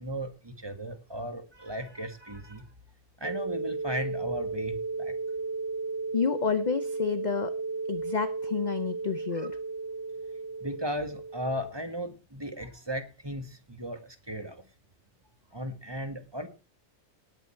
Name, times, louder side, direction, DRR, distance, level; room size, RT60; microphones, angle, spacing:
voice 1, 0.0-2.7 3.2-5.1 9.3-9.5 10.6-14.6 15.5-16.5, equal, 20° right, 7 dB, 1.7 m, -36 dB
sound 1, 3.2-11.7, right 3 dB, 50° right, 2.1 m, -34 dB
voice 2, 6.1-7.5 7.9-9.5, left 7 dB, 45° left, 12 dB, 0.6 m, -30 dB
18.5 x 8.2 x 4.4 m, 0.34 s
omnidirectional pair, 1.4 m